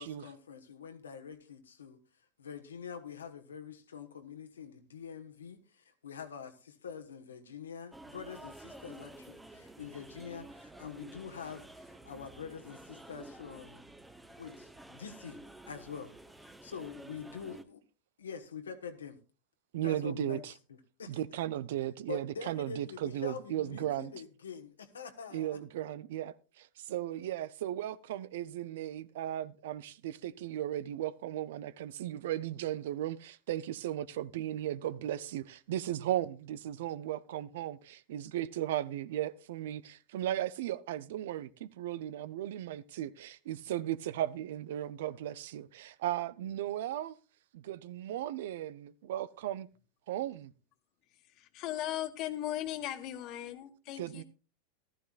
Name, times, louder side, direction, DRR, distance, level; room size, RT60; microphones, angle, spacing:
voice 1, 0.0-2.0 2.4-13.9 14.4-15.4 15.7-16.1 16.4-17.8 18.2-19.2 19.8-20.4 20.7-21.2 22.1-25.6, left 6 dB, 90° left, 1.5 m, -45 dB
sound 1, 7.9-17.6, right 1 dB, 5° right, 1.2 m, -51 dB
voice 2, 19.7-20.5 21.1-24.1 25.3-47.1 47.5-49.7 50.1-50.5 54.0-54.2, right 12 dB, 70° right, 0.6 m, -36 dB
voice 3, 51.3-54.2, left 12 dB, 50° left, 1.6 m, -38 dB
14.5 x 12.5 x 2.5 m
hypercardioid pair, 100°, 0 cm